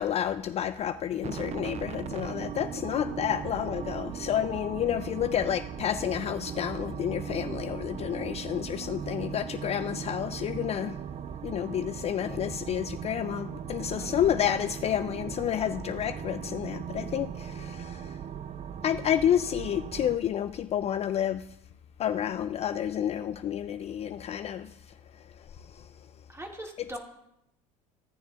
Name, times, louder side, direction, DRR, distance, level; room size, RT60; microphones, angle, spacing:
voice 1, 0.0-11.0 11.4-18.2 18.8-21.5 22.0-24.7, left 10 dB, 40° left, 0.4 m, -30 dB
sound 1, 1.2-20.2, right 9 dB, 40° right, 0.5 m, -38 dB
voice 2, 14.0-14.3 26.3-27.0, right 1 dB, 15° right, 2.3 m, -41 dB
16.0 x 6.8 x 2.5 m
supercardioid pair, 85°, 17 cm